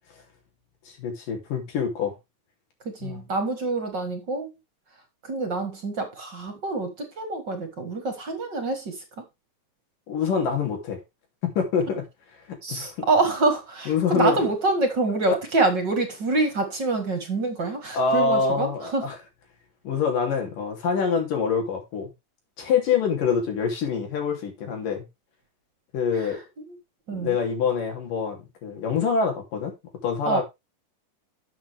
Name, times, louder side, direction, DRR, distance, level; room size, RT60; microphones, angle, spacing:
voice 1, 0.9-2.1 3.0-3.2 10.1-11.0 11.4-12.0 12.5-12.9 13.9-14.4 17.9-19.2 19.8-22.1 22.6-25.0 25.9-26.4 27.1-29.7 30.0-30.4, left 5 dB, 85° left, 4.6 m, -25 dB
voice 2, 2.9-4.5 5.2-9.0 12.6-19.1 26.1-26.4 26.7-26.8 27.1-27.4 30.3-30.4, right 3 dB, 45° right, 1.7 m, -26 dB
12.0 x 7.4 x 3.4 m
omnidirectional pair, 3.7 m